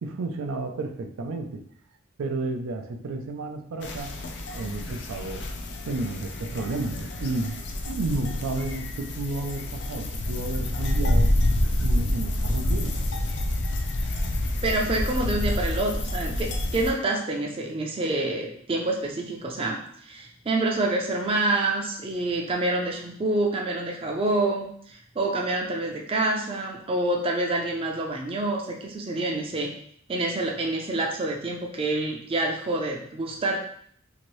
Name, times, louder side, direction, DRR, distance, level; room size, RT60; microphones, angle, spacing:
voice 1, 0.0-1.6 2.2-4.3 4.5-5.4 5.8-11.3 11.8-13.0, right 2 dB, 90° right, 6 dB, 0.4 m, -32 dB
sound 1, 3.8-16.9, left 1 dB, 55° left, 0.4 m, -28 dB
voice 2, 14.6-29.7 30.1-33.6, right 2 dB, 25° right, 1 dB, 0.4 m, -27 dB
2.8 x 2.6 x 3.0 m, 0.63 s
head